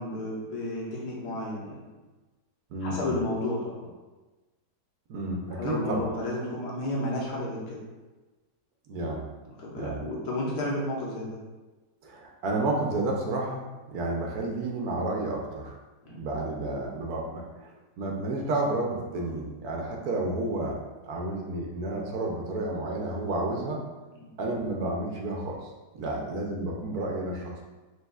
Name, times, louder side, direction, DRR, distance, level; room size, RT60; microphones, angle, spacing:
voice 1, 0.0-1.8 2.8-3.9 5.5-7.8 9.6-11.4 16.0-16.2 24.2-24.3 26.0-26.2, left 1 dB, 80° left, -4 dB, 1.7 m, -32 dB
voice 2, 2.7-3.2 5.1-6.0 8.9-9.2 9.7-10.0 12.0-13.6 13.9-15.8 16.1-20.8 21.1-23.8 24.4-27.6, right 2 dB, 65° right, 0 dB, 1.1 m, -31 dB
5.5 x 3.4 x 2.3 m, 1.2 s
omnidirectional pair, 1.9 m